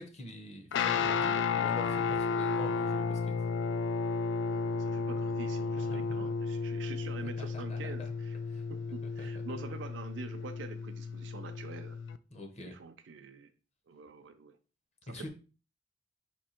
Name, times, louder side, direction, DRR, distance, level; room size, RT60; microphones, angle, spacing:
voice 1, 0.0-3.3 5.6-6.3 7.2-8.1 8.5-8.6 9.0-9.4 12.3-12.8 15.1-15.3, left 1 dB, 35° left, 3 dB, 0.9 m, -45 dB
Guitar, 0.7-12.2, left 5 dB, 70° left, 0.3 m, -33 dB
voice 2, 4.4-8.4 8.7-12.0 12.6-13.5 13.9-14.6 15.0-15.3, right 4 dB, 80° right, 5 dB, 0.4 m, -46 dB
4.4 x 2.7 x 4.3 m, 0.35 s
head